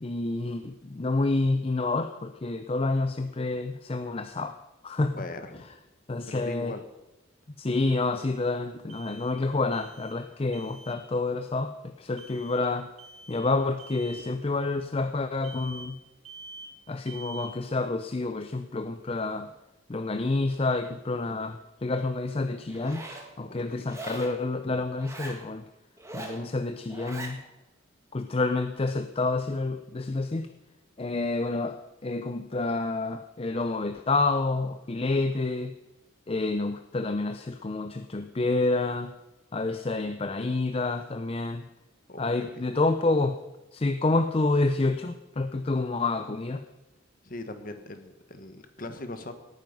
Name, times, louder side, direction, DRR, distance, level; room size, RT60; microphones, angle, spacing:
voice 1, 0.0-4.6 4.8-5.2 6.1-6.8 7.6-12.9 13.3-16.0 16.9-19.5 19.9-23.0 23.4-25.6 26.1-27.4 28.1-30.5 31.0-35.7 36.3-39.1 39.5-41.7 42.2-43.4 43.7-46.6, left 3 dB, 30° left, 9 dB, 0.5 m, -28 dB
voice 2, 5.1-5.6 6.3-6.8 23.4-24.0 42.1-42.6 47.2-49.3, left 2 dB, 45° left, 8 dB, 1.4 m, -40 dB
sound 1, 8.9-9.5 9.7-10.3 10.5-11.0 12.2-12.7 13.0-13.5 13.8-14.3 15.4-16.8 17.1-17.6, right 2 dB, 30° right, 1.1 m, -46 dB
Zipper (clothing), 22.7-23.3 23.9-24.4 25.0-25.4 26.0-26.4 26.9-27.4, right 2 dB, 15° right, 1.8 m, -40 dB
18.5 x 9.3 x 5.4 m, 1.0 s
head